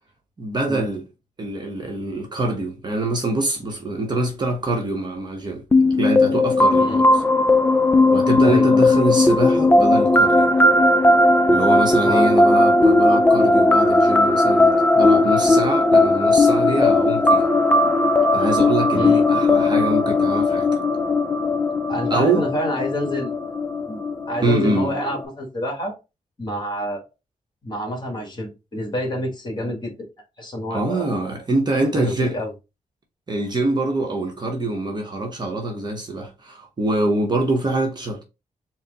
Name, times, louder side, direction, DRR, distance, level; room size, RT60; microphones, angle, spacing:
voice 1, 0.4-1.0 1.4-5.6 6.0-7.1 8.1-10.5 11.5-17.5 18.3-20.7 22.1-22.5 24.4-24.9 30.7-32.4 33.3-38.2, right 2 dB, 30° right, 0.9 m, -24 dB
sound 1, 5.7-25.2, left 2 dB, 15° left, 0.3 m, -17 dB
voice 2, 8.4-8.9 12.0-12.3 18.9-19.5 21.9-23.4 23.9-24.0 24.3-25.9 26.4-27.0 27.6-30.1 30.4-31.1 31.9-32.5, equal, 30° left, 1.5 m, -28 dB
4.3 x 2.1 x 3.9 m
wide cardioid pair, 130°, 14 cm